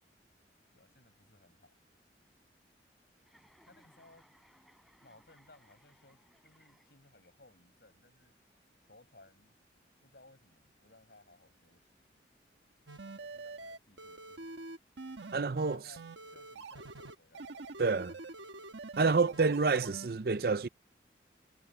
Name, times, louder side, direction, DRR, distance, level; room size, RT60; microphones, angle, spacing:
voice 1, 0.7-1.7 3.6-4.3 5.0-8.4 8.8-9.6 10.0-12.1 13.0-14.7 15.6-17.7, left 2 dB, 60° left, 7.0 m, -62 dB
Chuckle chortle, 3.2-7.3, equal, ahead, 5.2 m, -65 dB
sound 1, 12.9-20.1, right 3 dB, 85° right, 1.3 m, -46 dB
voice 2, 15.3-15.8 17.8-18.1 19.0-20.7, right 4 dB, 55° right, 0.6 m, -28 dB
head